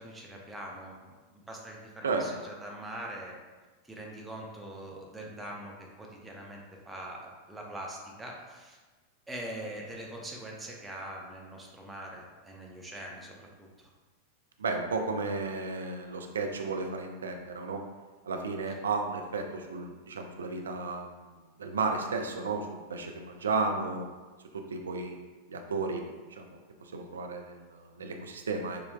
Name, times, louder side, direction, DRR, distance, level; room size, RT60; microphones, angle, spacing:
voice 1, 0.0-3.4 3.8-8.8 9.3-13.9 18.7-18.8, right 1 dB, 10° right, -1 dB, 0.6 m, -43 dB
voice 2, 14.6-17.8 18.2-21.3 21.6-24.0 24.5-25.2 25.5-26.0 26.3-28.8, right 4 dB, 70° right, 3 dB, 0.4 m, -33 dB
6.7 x 2.2 x 2.2 m, 1.3 s
figure-of-eight pair, 90°, 0 cm